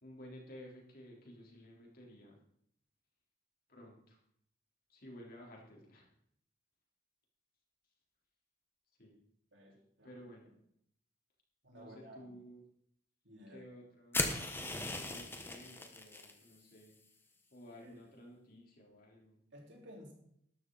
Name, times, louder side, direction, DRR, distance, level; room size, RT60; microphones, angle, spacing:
voice 1, 0.0-2.4 3.7-4.2 4.9-6.1 9.0-9.2 10.0-10.5 11.7-12.6 13.5-14.3 14.9-17.0 17.5-19.4, equal, 50° left, -1 dB, 3.7 m, -54 dB
voice 2, 9.5-10.3 11.6-12.3 13.2-13.6 17.8-18.0 19.5-20.1, equal, 75° right, -1 dB, 3.9 m, -55 dB
sound 1, 14.1-16.3, left 2 dB, 10° left, 1.2 m, -37 dB
12.5 x 11.0 x 4.0 m, 0.70 s
head